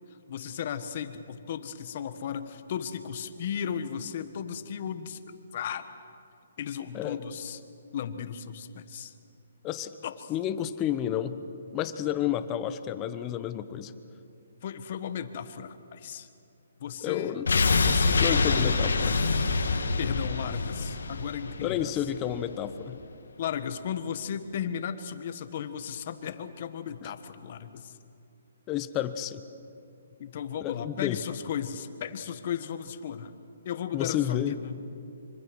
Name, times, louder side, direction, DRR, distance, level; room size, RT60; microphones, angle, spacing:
voice 1, 0.3-5.9 6.6-7.6 7.9-9.1 10.0-10.3 14.6-16.3 16.8-17.3 17.8-19.0 20.0-22.0 23.4-27.9 30.2-33.3 33.6-34.8, left 8 dB, 45° left, 10 dB, 1.4 m, -35 dB
voice 2, 9.6-10.0 10.3-11.4 11.7-13.9 17.0-17.5 18.2-19.2 21.6-23.0 27.0-27.1 28.7-29.4 30.6-31.2 33.9-34.5, left 11 dB, 20° left, 12 dB, 1.0 m, -30 dB
sound 1, 17.5-22.4 22.7-22.8, left 3 dB, 85° left, 2.0 m, -26 dB
25.0 x 25.0 x 6.3 m, 2.6 s
hypercardioid pair, 155°, 0 cm